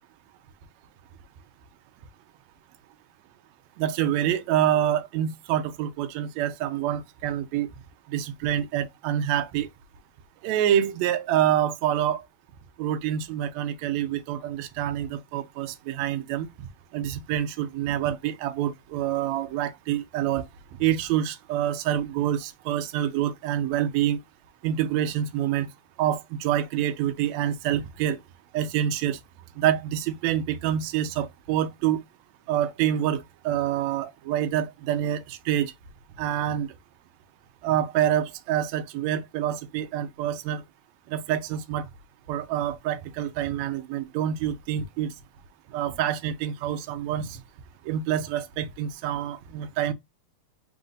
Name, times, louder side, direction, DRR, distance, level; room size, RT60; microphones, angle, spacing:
voice 1, 3.8-7.7 8.1-9.7 10.4-12.2 12.8-16.7 16.9-20.5 20.8-24.2 24.6-25.7 26.0-28.2 28.5-29.2 29.6-32.0 32.5-35.7 36.2-36.7 37.6-40.6 41.1-41.9 42.3-45.1 45.7-47.4 47.8-49.9, right 11 dB, 75° right, 1.7 m, -27 dB
5.0 x 2.5 x 3.8 m
omnidirectional pair, 3.7 m